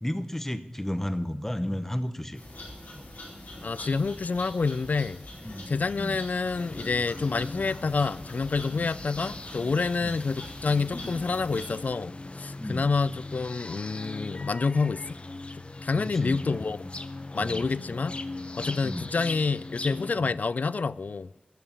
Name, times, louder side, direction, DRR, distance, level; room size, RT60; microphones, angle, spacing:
voice 1, 0.0-2.4 2.9-3.1 5.4-6.2 6.8-6.9 7.6-7.7 8.7-8.9 10.0-10.2 12.6-12.9 15.9-16.6 17.4-17.7 18.8-19.1 20.2-20.3, equal, 10° left, 0.9 m, -33 dB
sound 1, 2.4-11.9, left 1 dB, 90° left, 4.4 m, -43 dB
voice 2, 3.6-5.2 5.7-12.1 12.4-15.2 15.8-16.8 17.3-18.2 18.6-21.3, left 4 dB, 65° left, 0.3 m, -28 dB
sound 2, 6.5-20.1, left 2 dB, 40° left, 0.7 m, -40 dB
11.0 x 6.9 x 8.6 m
wide cardioid pair, 60°, 3 cm